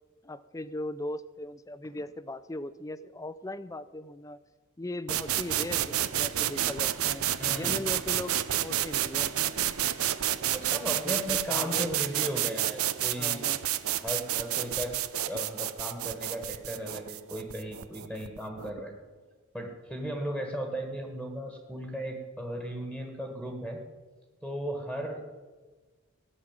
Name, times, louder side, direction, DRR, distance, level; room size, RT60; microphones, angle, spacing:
voice 1, 0.2-4.4 4.8-7.2 7.5-8.3 8.6-9.3 10.9-12.1 13.1-13.6, left 1 dB, 15° left, 15 dB, 0.5 m, -38 dB
sound 1, 5.1-18.8, right 12 dB, 85° right, 0.6 m, -30 dB
voice 2, 7.4-7.8 10.5-13.4 14.0-15.0 15.3-18.9 19.5-23.8 24.4-25.3, equal, 5° right, 3 dB, 1.6 m, -36 dB
17.5 x 6.4 x 8.9 m, 1.3 s
head